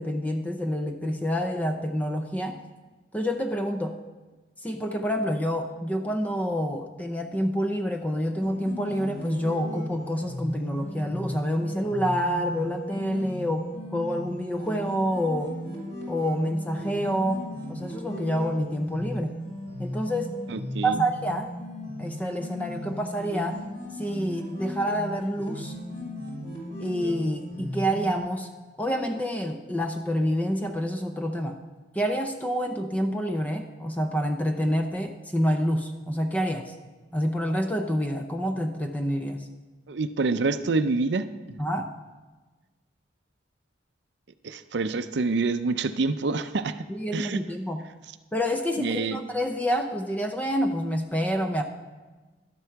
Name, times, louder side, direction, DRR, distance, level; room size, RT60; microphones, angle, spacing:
voice 1, 0.0-2.6 3.1-4.0 4.6-15.5 16.1-19.4 19.8-20.4 20.8-21.5 22.0-23.6 24.0-25.7 26.8-28.5 28.8-31.6 31.9-36.7 37.1-39.5 41.6-41.9 46.9-47.8 48.3-51.6, equal, 10° left, 5 dB, 0.5 m, -28 dB
sound 1, 8.4-28.2, equal, 40° left, 3.9 m, -37 dB
voice 2, 20.5-21.0 39.9-41.6 44.4-46.8 47.1-47.4 48.8-49.2, right 3 dB, 65° right, 11 dB, 0.5 m, -27 dB
12.0 x 8.0 x 5.8 m, 1.3 s
head